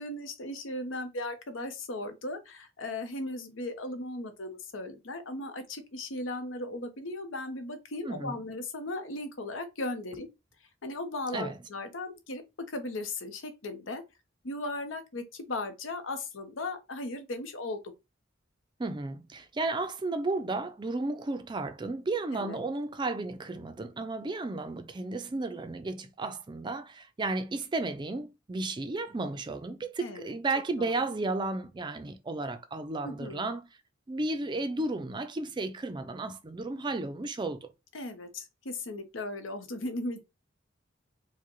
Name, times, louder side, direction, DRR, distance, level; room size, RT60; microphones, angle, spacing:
voice 1, 0.0-10.3 10.8-14.0 14.4-17.8 22.3-22.6 30.0-30.4 30.8-30.9 33.0-33.4 37.9-40.2, left 2 dB, 90° left, 0.8 m, -37 dB
voice 2, 8.0-8.4 11.3-11.6 18.8-33.7 34.1-37.7, right 2 dB, 25° right, 0.4 m, -33 dB
4.6 x 2.1 x 3.0 m
head